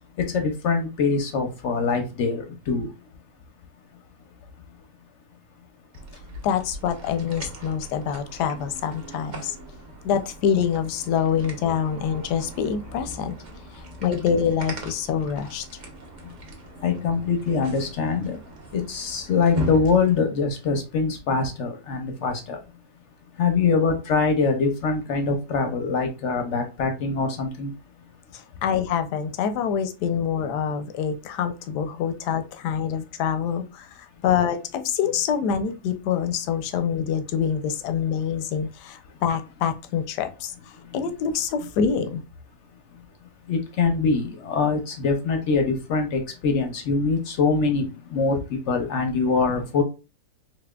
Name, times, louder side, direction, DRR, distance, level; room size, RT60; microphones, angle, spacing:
voice 1, 0.2-2.9 16.2-16.3 16.8-18.4 18.7-22.6 23.4-27.7 40.9-41.0 43.5-49.8, left 4 dB, 60° left, 5 dB, 0.8 m, -24 dB
sound 1, 5.9-20.2, right 1 dB, 40° right, 0.7 m, -39 dB
voice 2, 6.4-9.6 10.0-13.4 13.7-15.6 28.3-40.5 40.9-42.2, left 7 dB, 85° left, 9 dB, 1.2 m, -26 dB
4.1 x 2.9 x 2.2 m, 0.30 s
omnidirectional pair, 1.7 m